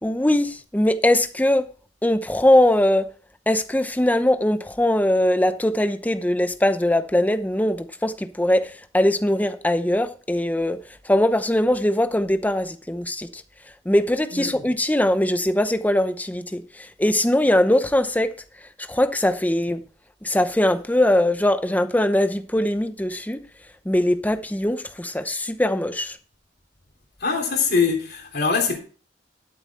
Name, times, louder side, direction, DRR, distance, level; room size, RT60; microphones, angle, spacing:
voice 1, 0.0-1.6 2.0-3.1 3.5-10.8 11.1-13.4 13.9-18.3 18.9-19.8 20.2-23.4 23.9-26.2, left 1 dB, 10° left, 0.7 m, -21 dB
voice 2, 14.3-14.6 27.2-28.8, left 5 dB, 60° left, 3.3 m, -23 dB
12.0 x 7.4 x 4.2 m
head